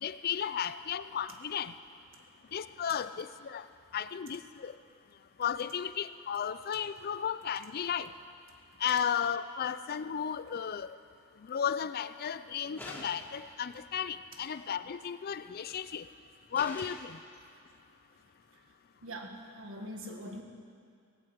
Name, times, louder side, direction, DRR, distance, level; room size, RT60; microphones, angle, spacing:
voice 1, 0.0-1.7 2.5-3.6 3.9-4.7 5.4-8.1 8.8-10.9 11.5-16.0 16.5-17.2, left 8 dB, 45° left, 14 dB, 0.4 m, -34 dB
sound 1, 12.8-13.4 15.5-15.8 16.5-17.1, left 1 dB, 10° left, 1.8 m, -45 dB
voice 2, 19.0-20.4, right 1 dB, 65° right, 3 dB, 1.7 m, -43 dB
17.5 x 8.9 x 8.0 m, 2.4 s
head